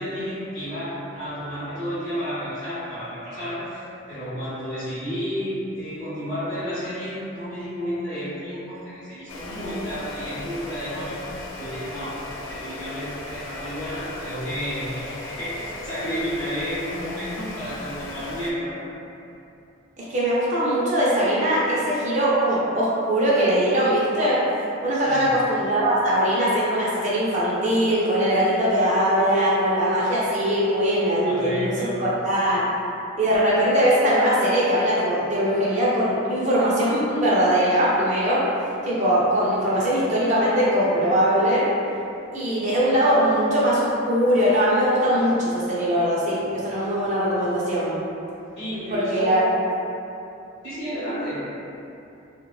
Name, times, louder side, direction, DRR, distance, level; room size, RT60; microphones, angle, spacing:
voice 1, 0.0-12.1 12.5-18.7 24.9-25.3 31.2-32.0 48.6-49.5 50.6-51.4, equal, 25° left, -16 dB, 0.9 m, -31 dB
sound 1, 9.3-18.5, left 2 dB, 80° left, 0.3 m, -37 dB
voice 2, 20.0-24.4 24.8-31.7 32.0-32.6 33.2-38.4 38.8-41.7 42.3-48.0 48.9-49.4, equal, 35° right, -7 dB, 0.5 m, -21 dB
2.9 x 2.1 x 2.3 m, 2.8 s
head